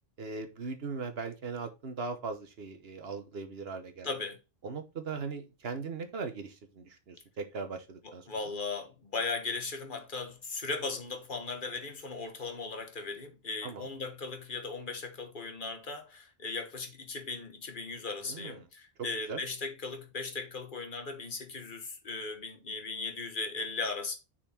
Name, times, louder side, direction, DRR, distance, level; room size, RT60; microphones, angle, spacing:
voice 1, 0.2-4.1 4.6-8.5 13.6-13.9 18.2-18.7 19.3-19.4, right 4 dB, 75° right, 1.3 m, -39 dB
voice 2, 4.0-4.4 8.3-24.2, left 4 dB, 55° left, 1.3 m, -37 dB
6.3 x 4.2 x 4.2 m
omnidirectional pair, 1.0 m